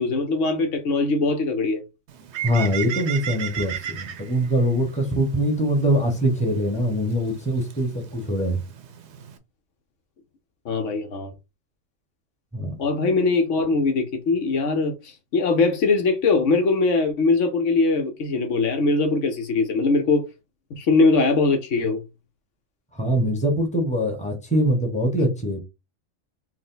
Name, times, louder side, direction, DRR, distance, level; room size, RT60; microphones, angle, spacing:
voice 1, 0.0-1.8 10.6-11.3 12.8-20.2 20.7-22.0, left 3 dB, 70° left, 1.1 m, -21 dB
Bird, 2.1-9.4, right 10 dB, 60° right, 0.9 m, -36 dB
voice 2, 2.4-8.6 12.5-12.8 22.9-25.6, equal, 5° left, 1.0 m, -23 dB
4.7 x 2.1 x 3.9 m
omnidirectional pair, 1.4 m